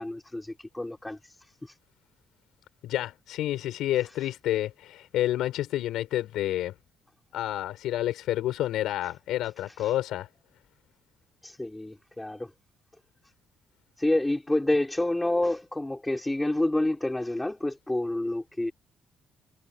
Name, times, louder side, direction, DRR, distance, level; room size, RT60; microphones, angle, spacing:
voice 1, 0.0-1.8 4.1-4.2 9.7-9.9 11.4-12.5 14.0-18.7, left 1 dB, 10° left, 4.8 m, -29 dB
voice 2, 2.8-6.7 7.3-10.3, left 13 dB, 85° left, 5.9 m, -29 dB
cardioid pair, 90°, 0 cm